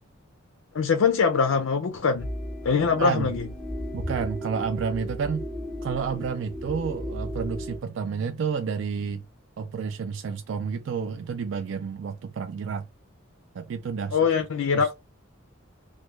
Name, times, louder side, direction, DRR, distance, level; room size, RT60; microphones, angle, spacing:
voice 1, 0.7-2.3 2.6-3.5 14.1-14.9, left 5 dB, 80° left, 0.4 m, -23 dB
sound 1, 2.2-7.8, equal, 5° left, 0.4 m, -35 dB
voice 2, 3.0-3.3 3.9-5.5 5.8-9.2 9.6-12.9 13.5-14.2 14.8-14.9, right 6 dB, 65° right, 0.3 m, -30 dB
3.0 x 2.2 x 3.2 m
head